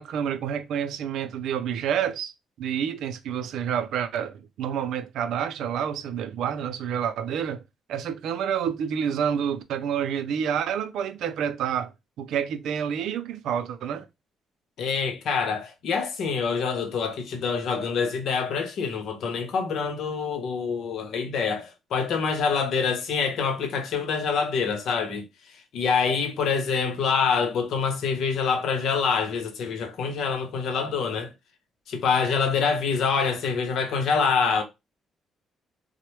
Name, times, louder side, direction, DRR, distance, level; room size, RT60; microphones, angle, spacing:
voice 1, 0.0-2.3 2.6-7.6 7.9-11.9 12.2-14.1, right 8 dB, 80° right, 0.4 m, -28 dB
voice 2, 14.8-31.3 31.9-34.6, left 5 dB, 75° left, 0.7 m, -26 dB
2.9 x 2.1 x 3.1 m
cardioid pair, 90°, 0 cm